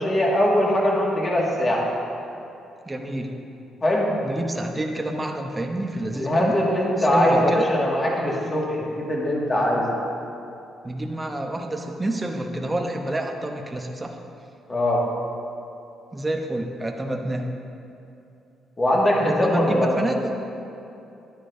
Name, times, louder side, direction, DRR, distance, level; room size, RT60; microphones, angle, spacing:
voice 1, 0.0-1.8 3.8-4.1 6.1-9.9 14.7-15.0 18.8-19.9, left 1 dB, 30° left, -3 dB, 2.0 m, -21 dB
voice 2, 2.9-3.3 4.2-6.5 7.0-7.7 10.8-14.2 16.1-17.5 19.2-20.3, right 1 dB, 20° right, 3 dB, 0.8 m, -28 dB
11.5 x 10.0 x 2.7 m, 2.8 s
cardioid pair, 90°, 0 cm